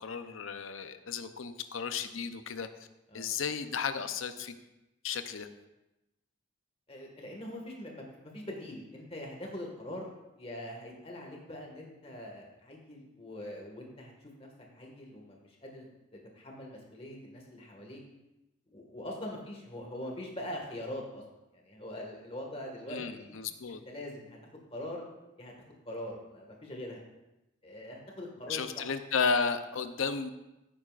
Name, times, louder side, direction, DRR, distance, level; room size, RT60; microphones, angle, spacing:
voice 1, 0.0-2.7 3.1-4.6 5.0-5.5 22.9-23.8 28.5-30.3, left 5 dB, 80° left, 9 dB, 0.7 m, -33 dB
voice 2, 6.9-10.1 10.4-15.8 16.1-18.0 18.7-21.2 21.5-23.3 23.7-24.4 24.7-25.0 25.4-25.5 25.9-27.0 27.6-28.8, left 1 dB, 30° left, 0 dB, 1.8 m, -43 dB
15.0 x 8.6 x 2.5 m, 0.97 s
head